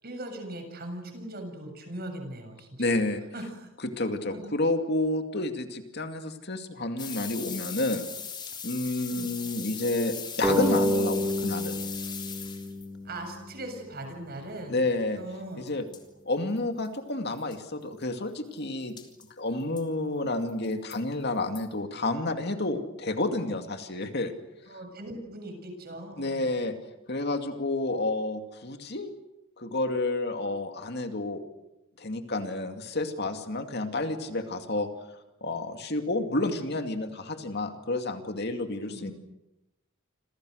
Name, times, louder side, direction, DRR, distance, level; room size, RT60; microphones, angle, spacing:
voice 1, 0.0-2.9 3.3-3.7 4.3-4.5 9.1-9.3 13.0-14.8 15.1-15.7 24.7-26.5 38.8-39.1, right 1 dB, 45° right, 5 dB, 7.3 m, -40 dB
voice 2, 2.8-3.2 3.8-8.1 8.6-11.8 14.7-15.2 15.5-15.8 16.2-18.9 19.4-24.3 26.2-26.7 27.1-29.1 29.6-31.4 32.0-34.9 35.4-39.1, left 2 dB, 50° left, 6 dB, 2.4 m, -30 dB
sound 1, 7.0-12.9 15.7-15.8 15.9-16.0 16.6-16.7 16.8-16.9 17.4-17.6 19.0-19.3 19.8-19.9 20.5-21.0 21.6-21.7, left 7 dB, 20° left, 3.4 m, -39 dB
sound 2, 10.4-13.6, equal, 10° right, 2.3 m, -29 dB
29.0 x 27.0 x 6.5 m, 0.91 s
head